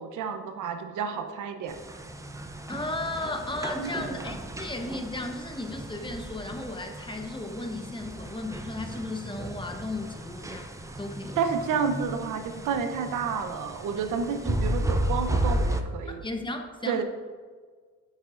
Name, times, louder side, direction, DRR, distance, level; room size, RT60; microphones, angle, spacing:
voice 1, 0.0-1.8 3.8-4.3 11.4-16.2 16.8-17.0, right 6 dB, 85° right, 7 dB, 0.9 m, -30 dB
sound 1, 1.7-15.8, right 1 dB, 10° right, 0.6 m, -34 dB
voice 2, 2.7-10.7 11.0-11.4 16.2-17.0, left 2 dB, 15° left, 4 dB, 1.0 m, -35 dB
8.7 x 7.1 x 2.6 m, 1.5 s
cardioid pair, 90°, 30 cm